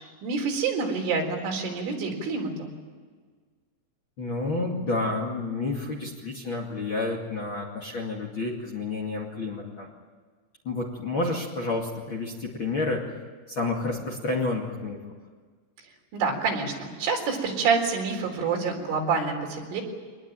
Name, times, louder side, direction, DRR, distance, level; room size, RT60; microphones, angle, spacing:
voice 1, 0.2-2.7 16.1-19.8, right 5 dB, 90° right, 2 dB, 6.6 m, -27 dB
voice 2, 4.2-9.9 10.6-13.1 13.5-15.0, left 3 dB, 35° left, -1 dB, 2.2 m, -30 dB
24.5 x 20.0 x 9.0 m, 1.5 s
omnidirectional pair, 5.5 m